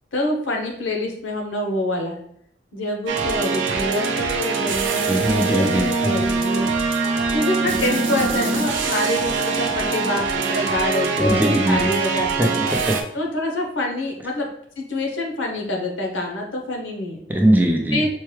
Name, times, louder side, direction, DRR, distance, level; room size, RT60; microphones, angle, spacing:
voice 1, 0.1-2.2 2.7-6.7 7.3-12.6 13.1-14.5 14.8-17.2 17.9-18.1, left 1 dB, 90° left, 2 dB, 0.9 m, -26 dB
sound 1, 3.1-13.0, right 4 dB, 90° right, 0.6 m, -23 dB
voice 2, 5.1-6.1 11.1-11.9 12.4-13.0 17.3-18.0, right 1 dB, 10° right, 1 dB, 0.5 m, -20 dB
4.5 x 2.2 x 3.2 m, 0.66 s
head